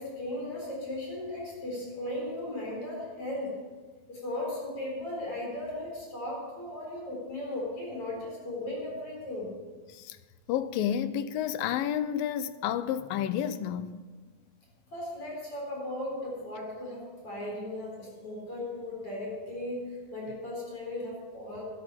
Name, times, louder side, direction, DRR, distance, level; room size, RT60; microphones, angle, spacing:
voice 1, 0.0-3.6 4.1-9.5 14.9-21.6, left 1 dB, 40° left, 5.2 m, -36 dB
voice 2, 10.5-14.0, left 10 dB, 85° left, 2.4 m, -30 dB
12.5 x 11.0 x 6.0 m
omnidirectional pair, 4.0 m